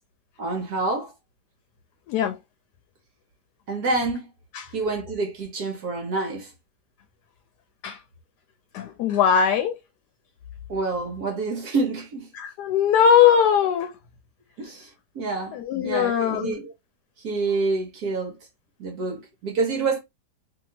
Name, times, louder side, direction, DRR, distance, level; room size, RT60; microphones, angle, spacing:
voice 1, 0.4-1.1 3.7-4.3 4.7-6.5 10.7-12.3 14.6-16.7 17.2-18.4 18.8-20.0, right 3 dB, 65° right, 1.2 m, -27 dB
voice 2, 8.7-9.8 12.3-13.9 15.5-16.5, left 8 dB, 75° left, 1.1 m, -20 dB
2.8 x 2.8 x 2.7 m
omnidirectional pair, 1.9 m